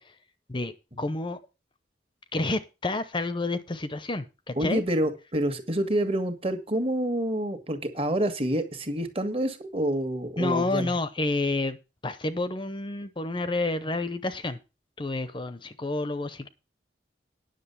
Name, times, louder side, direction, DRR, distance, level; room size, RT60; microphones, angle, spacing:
voice 1, 0.5-1.4 2.3-4.8 10.4-11.8 12.0-14.6 15.0-16.5, left 2 dB, 25° left, 13 dB, 0.7 m, -29 dB
voice 2, 4.5-10.9, right 1 dB, 35° right, 8 dB, 1.7 m, -28 dB
10.0 x 6.6 x 6.9 m, 0.29 s
head